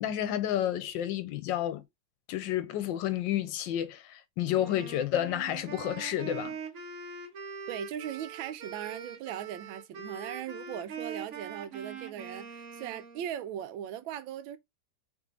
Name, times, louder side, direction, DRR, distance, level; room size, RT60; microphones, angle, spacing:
voice 1, 0.0-1.8 2.3-6.5, left 11 dB, 75° left, 1.2 m, -30 dB
Wind instrument woodwind instrument, 4.5-13.3, right 5 dB, 50° right, 1.1 m, -43 dB
voice 2, 7.7-14.6, right 10 dB, 80° right, 1.3 m, -39 dB
3.7 x 3.1 x 3.6 m
omnidirectional pair, 2.1 m